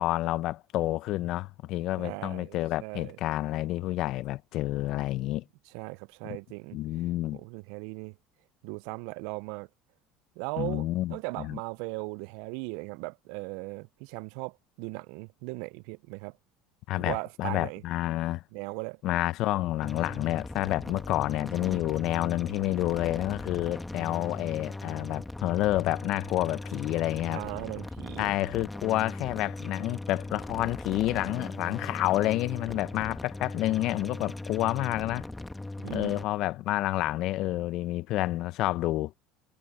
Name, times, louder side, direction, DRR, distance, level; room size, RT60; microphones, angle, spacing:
voice 1, 0.0-5.4 6.2-6.4 6.7-7.4 10.6-11.6 16.9-18.4 19.0-27.4 28.2-35.2 35.9-39.1, left 16 dB, 60° left, 0.7 m, -29 dB
voice 2, 2.0-3.2 5.7-6.8 7.3-8.2 8.6-9.7 10.4-16.4 17.1-17.8 18.5-19.0 27.3-28.4 35.8-36.1, right 27 dB, 75° right, 0.5 m, -38 dB
sound 1, 19.8-36.2, left 2 dB, 10° left, 1.6 m, -39 dB
supercardioid pair, 85°, 0 cm